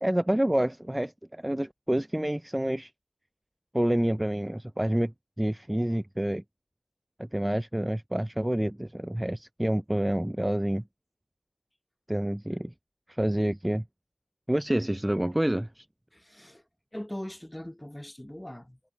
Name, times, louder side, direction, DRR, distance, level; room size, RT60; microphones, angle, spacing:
voice 1, 0.0-2.9 3.7-6.4 7.2-10.8 12.1-12.7 13.1-13.8 14.5-15.8, right 1 dB, 10° right, 0.5 m, -28 dB
voice 2, 16.1-16.6 16.9-18.8, left 1 dB, 10° left, 0.9 m, -40 dB
wide cardioid pair, 75°, 0 cm